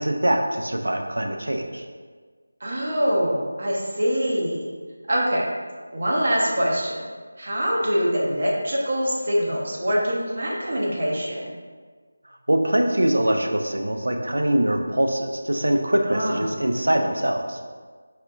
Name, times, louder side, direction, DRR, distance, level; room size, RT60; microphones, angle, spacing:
voice 1, 0.0-1.9 12.2-17.6, right 1 dB, 80° right, 4 dB, 0.4 m, -23 dB
voice 2, 2.6-4.7 5.1-5.5 5.9-7.0 7.4-11.5 16.0-16.4, equal, 55° right, -3 dB, 0.7 m, -24 dB
4.2 x 2.6 x 2.3 m, 1.5 s
figure-of-eight pair, 170°, 0 cm